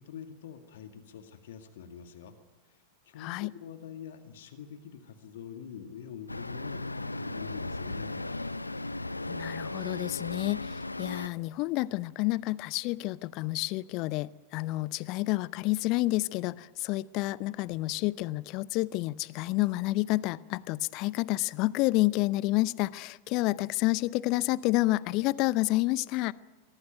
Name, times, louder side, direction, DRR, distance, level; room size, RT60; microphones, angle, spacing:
voice 1, 0.0-2.3 2.7-8.3, left 8 dB, 60° left, 2.1 m, -45 dB
voice 2, 3.2-3.5 9.3-26.3, left 19 dB, 40° left, 0.6 m, -29 dB
Traffic noise roadway noise, 6.3-11.3, left 2 dB, 85° left, 0.8 m, -36 dB
23.5 x 18.5 x 9.3 m
figure-of-eight pair, 90°, 0 cm